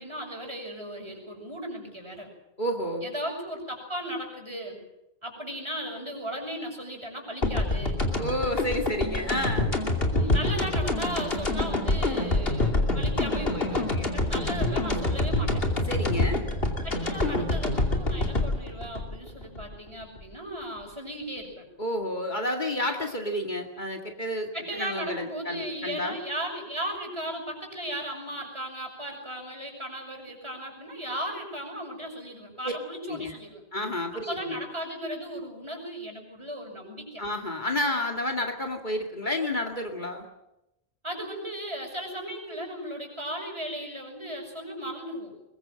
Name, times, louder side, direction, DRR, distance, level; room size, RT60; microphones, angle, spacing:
voice 1, 0.0-2.3 3.0-4.8 5.2-8.0 10.1-15.6 16.8-21.7 24.5-33.6 34.3-37.2 41.0-45.3, right 1 dB, 30° right, 2 dB, 6.4 m, -36 dB
voice 2, 2.6-3.1 8.2-9.8 15.9-16.4 21.8-26.2 32.6-32.7 33.1-33.3 33.7-34.6 37.2-40.3, left 1 dB, 50° left, 3 dB, 2.3 m, -30 dB
sound 1, 7.4-20.2, left 2 dB, 70° left, 3.0 m, -26 dB
22.5 x 22.0 x 7.6 m, 0.88 s
omnidirectional pair, 1.0 m